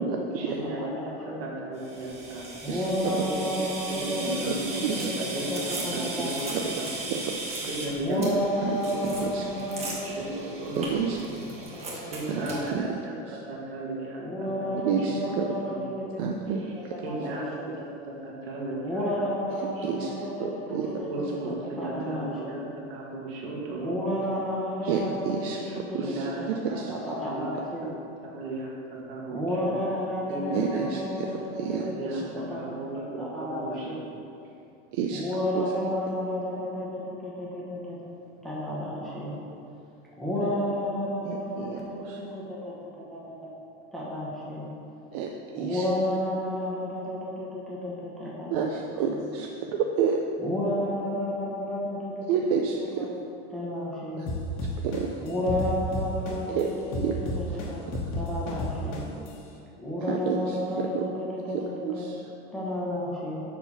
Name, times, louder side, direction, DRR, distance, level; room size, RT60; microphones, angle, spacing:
voice 1, 0.0-1.1 1.4-2.8 3.2-5.6 5.9-6.9 7.3-8.2 8.7-8.9 9.7-11.1 11.7-15.3 15.6-16.7 17.0-17.9 18.2-19.0 19.8-20.0 20.7-22.6 22.9-24.1 24.8-25.1 25.6-26.8 27.2-27.5 28.2-28.7 29.1-29.7 30.3-30.9 31.4-32.2 32.5-34.0, right 2 dB, 60° right, -3 dB, 2.1 m, -36 dB
voice 2, 0.6-1.4 2.6-6.7 8.0-10.6 11.6-12.1 12.5-13.2 14.2-16.2 16.8-17.7 18.8-22.6 23.8-27.9 29.3-32.8 33.2-34.0 35.1-38.0 38.4-39.4 40.2-43.5 43.9-44.7 45.5-48.7 49.0-49.2 50.4-52.4 52.8-53.1 53.5-54.2 55.2-57.8 58.2-59.0 59.8-62.1 62.5-63.4, left 1 dB, ahead, -7 dB, 1.0 m, -32 dB
sound 1, 1.8-12.7, right 2 dB, 20° right, 1.1 m, -36 dB
voice 3, 6.2-6.6 7.1-7.6 8.2-8.3 8.6-8.8 9.3-9.4 10.8-11.2 11.9-12.0 12.3-12.4 12.7-12.8 13.3-13.4 14.8-15.5 16.2-16.6 19.8-20.1 20.4-20.8 24.9-25.0 25.3-25.6 25.9-26.9 30.5-31.0 31.6-31.9 32.1-32.2 34.9-35.2 35.5-35.6 41.3-41.8 42.1-42.2 45.1-45.3 45.5-45.8 48.5-50.2 52.3-53.1 54.8-55.1 56.5-56.7 57.0-57.1 60.1-60.6 60.9-61.0 61.5-62.2, right 7 dB, 35° right, 2 dB, 0.4 m, -29 dB
sound 2, 54.3-56.6 56.9-59.3, left 2 dB, 40° left, 1.2 m, -31 dB
7.2 x 5.6 x 5.7 m, 2.6 s
supercardioid pair, 180°, 33 cm